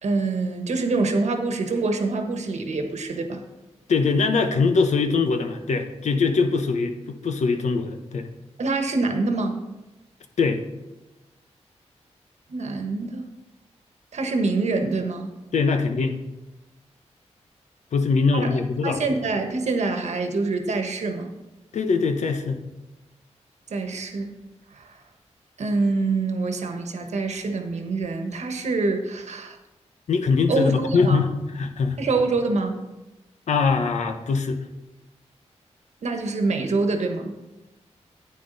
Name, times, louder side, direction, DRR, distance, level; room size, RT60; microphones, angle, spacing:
voice 1, 0.0-3.4 8.6-9.6 12.5-13.2 14.1-15.3 18.3-21.3 23.7-24.3 24.7-25.0 25.6-29.6 30.5-31.2 32.0-32.8 36.0-37.3, right 3 dB, 75° right, 5 dB, 1.3 m, -25 dB
voice 2, 3.9-8.3 10.4-10.6 15.5-16.1 17.9-19.0 21.7-22.6 30.1-32.0 33.5-34.6, left 4 dB, 80° left, 6 dB, 1.0 m, -22 dB
10.0 x 9.2 x 4.0 m, 1.0 s
wide cardioid pair, 110°, 12 cm